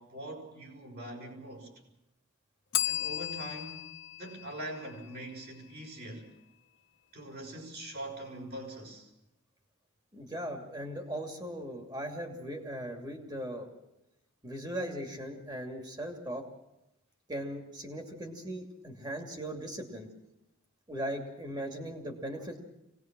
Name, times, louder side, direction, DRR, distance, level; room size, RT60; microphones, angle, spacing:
voice 1, 0.0-1.7 2.8-6.3 7.1-9.1, right 1 dB, 50° right, 6.2 m, -43 dB
Bell, 2.7-5.5, left 14 dB, 55° left, 0.7 m, -36 dB
voice 2, 10.1-13.7 14.4-16.5 17.3-20.1 20.9-22.6, equal, 20° right, 2.7 m, -38 dB
25.0 x 19.0 x 6.2 m
head